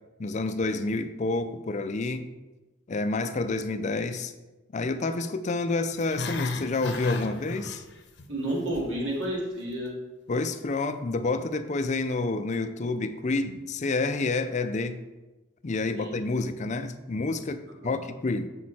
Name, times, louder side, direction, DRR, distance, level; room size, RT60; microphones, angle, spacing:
voice 1, 0.2-2.3 2.9-4.3 4.7-7.8 10.3-15.0 15.6-18.5, left 3 dB, 40° left, 10 dB, 0.5 m, -29 dB
Growling, 5.9-8.2 8.5-8.9 9.3-9.4, left 3 dB, 70° left, 0.9 m, -33 dB
voice 2, 8.3-9.9 15.9-16.2 17.8-18.0, right 1 dB, 75° right, -4 dB, 2.8 m, -31 dB
7.4 x 6.2 x 4.2 m, 1.1 s
head